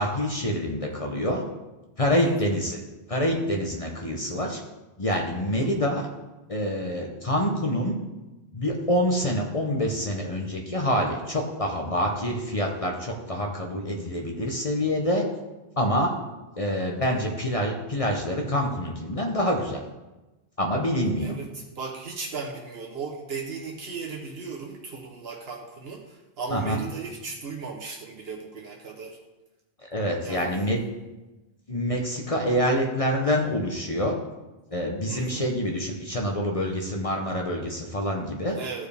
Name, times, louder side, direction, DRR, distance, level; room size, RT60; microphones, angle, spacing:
voice 1, 0.0-1.4 2.0-2.8 3.1-4.6 5.0-6.1 6.5-8.0 8.5-15.2 15.8-16.1 16.6-19.8 20.6-21.3 26.5-26.8 29.8-30.8 31.7-34.1 34.7-38.6, equal, 35° left, 1 dB, 0.9 m, -26 dB
voice 2, 2.2-2.6 5.6-5.8 17.1-17.4 21.2-29.2 30.2-30.7 35.1-35.5 38.5-38.9, right 4 dB, 75° right, -1 dB, 1.1 m, -37 dB
14.0 x 4.7 x 3.4 m, 1.1 s
omnidirectional pair, 1.1 m